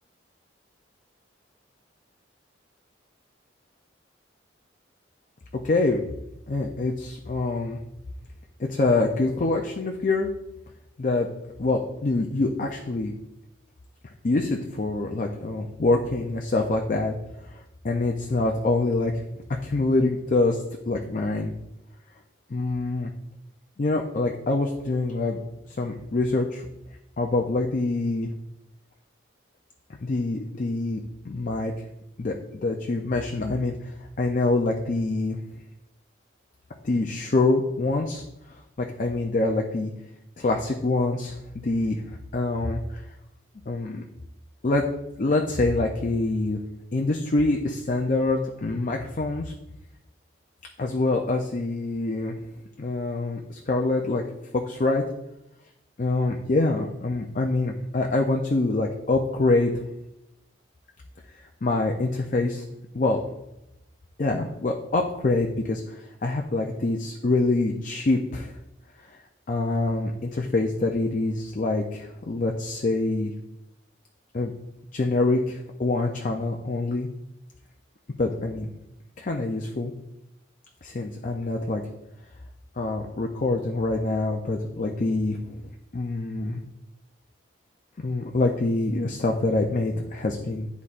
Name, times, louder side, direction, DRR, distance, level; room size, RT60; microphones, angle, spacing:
voice 1, 5.6-6.0 6.5-7.8 8.6-10.3 11.0-11.3 11.6-13.1 14.2-17.2 17.4-19.1 19.6-21.5 22.5-23.1 23.8-25.4 25.7-26.7 27.2-28.3 30.0-31.0 31.3-31.7 32.2-32.4 32.6-35.4 36.8-38.2 38.8-39.9 40.4-42.0 42.3-43.0 43.7-44.0 44.6-44.8 45.2-46.6 46.9-49.5 50.8-52.4 52.8-54.2 54.5-55.0 56.0-59.7 61.6-62.6 62.9-63.2 64.2-68.5 69.5-73.3 74.3-74.5 74.9-77.1 78.2-78.7 79.2-79.9 80.8-81.8 82.8-85.6 85.9-86.6 88.0-90.7, left 2 dB, 40° left, 2 dB, 0.4 m, -25 dB
10.5 x 4.1 x 2.5 m, 0.89 s
head